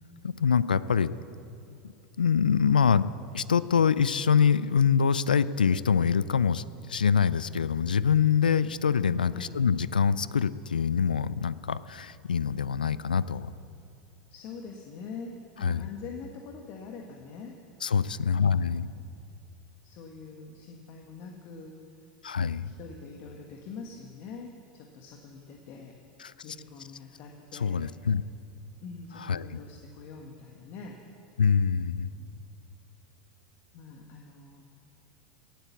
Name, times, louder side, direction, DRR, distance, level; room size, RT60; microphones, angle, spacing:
voice 1, 0.2-1.1 1.8-13.5 15.6-15.9 17.8-18.9 22.2-22.7 26.2-26.3 27.5-28.2 29.2-29.5 31.4-32.1, left 7 dB, 85° left, 17 dB, 0.4 m, -25 dB
voice 2, 14.3-17.6 18.1-19.0 19.8-21.8 22.6-26.0 26.4-27.8 28.8-31.0 32.0-32.4 33.7-34.6, left 5 dB, 50° left, 2 dB, 1.5 m, -44 dB
18.0 x 9.2 x 7.2 m, 2.5 s
hypercardioid pair, 90°, 5 cm